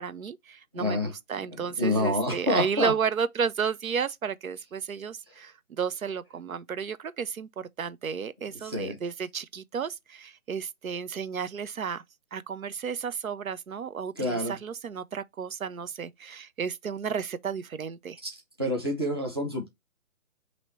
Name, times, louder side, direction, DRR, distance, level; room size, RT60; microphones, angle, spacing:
voice 1, 0.0-12.0 12.3-18.2, right 6 dB, 75° right, 0.7 m, -32 dB
voice 2, 0.7-1.1 1.8-2.9 8.6-8.9 14.2-14.5 18.2-18.3 18.6-19.7, left 1 dB, 20° right, 0.8 m, -27 dB
5.5 x 2.9 x 3.1 m
hypercardioid pair, 175°, 42 cm